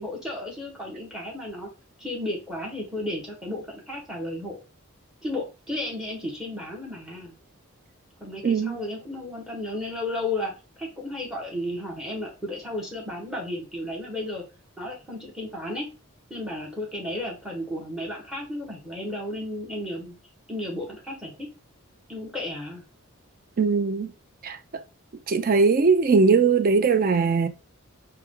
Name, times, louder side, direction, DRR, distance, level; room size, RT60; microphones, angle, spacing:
voice 1, 0.0-1.7 2.0-4.6 5.2-7.3 8.2-10.5 10.8-14.4 14.8-15.9 16.3-20.1 20.5-21.5 22.1-22.8, left 1 dB, 5° right, 1.2 m, -33 dB
voice 2, 8.4-8.8 23.6-24.1 24.4-24.8 25.3-27.5, right 4 dB, 40° right, 0.4 m, -20 dB
4.6 x 2.2 x 3.6 m
head